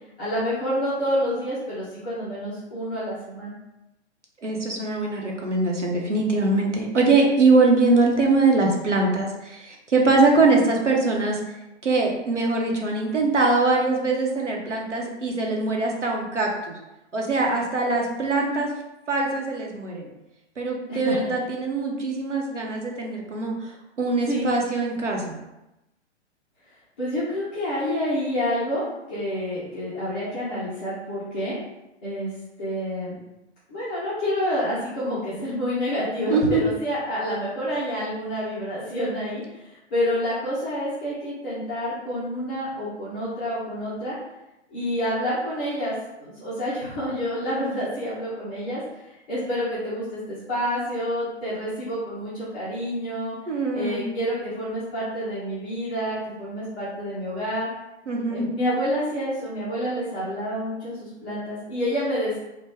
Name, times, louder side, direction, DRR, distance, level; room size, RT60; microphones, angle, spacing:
voice 1, 0.2-3.6 9.9-10.0 18.4-18.6 20.9-21.3 24.3-24.5 27.0-31.6 32.0-32.3 32.6-33.2 33.7-44.2 44.7-53.3 53.7-57.7 58.3-62.4, equal, 10° left, -11 dB, 0.3 m, -28 dB
voice 2, 4.4-11.4 11.8-16.8 17.1-18.7 19.1-20.1 20.6-23.7 24.0-25.4 36.3-36.6 53.5-54.1 58.1-58.4, right 3 dB, 85° right, 0 dB, 0.8 m, -22 dB
3.0 x 2.1 x 3.4 m, 0.94 s
figure-of-eight pair, 115°, 35 cm